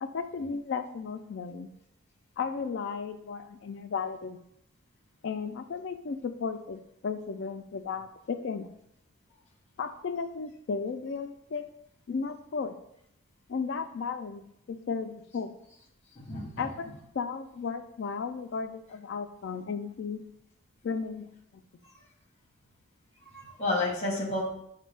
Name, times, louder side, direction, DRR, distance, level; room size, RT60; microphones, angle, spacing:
voice 1, 0.0-1.7 2.4-4.4 5.2-8.7 9.8-11.6 12.1-12.7 13.5-15.5 16.6-16.9 17.1-20.2 20.8-21.2 21.5-21.6, left 5 dB, 55° left, 8 dB, 0.3 m, -34 dB
voice 2, 16.1-16.7 21.8-21.9 23.2-24.5, left 2 dB, 30° left, -2 dB, 0.9 m, -31 dB
6.1 x 2.2 x 3.2 m, 0.78 s
head